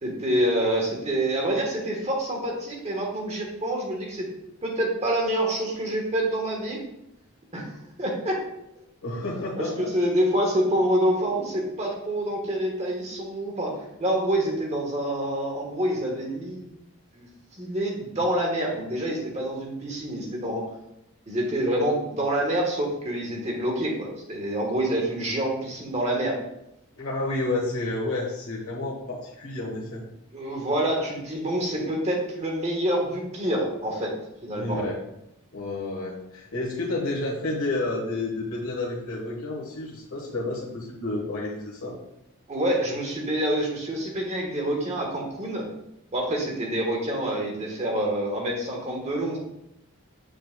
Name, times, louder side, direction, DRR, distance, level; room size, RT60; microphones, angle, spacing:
voice 1, 0.0-4.3 4.6-6.8 7.5-7.7 8.0-8.4 9.6-16.6 17.1-17.3 17.6-20.7 21.3-26.4 30.3-34.1 34.4-34.8 42.5-45.7 46.1-49.4, right 1 dB, 30° right, 0 dB, 1.2 m, -27 dB
voice 2, 9.0-9.9 27.0-30.0 34.5-35.0 35.5-42.0, left 2 dB, 70° left, -5 dB, 1.2 m, -30 dB
6.7 x 6.3 x 2.2 m, 0.83 s
head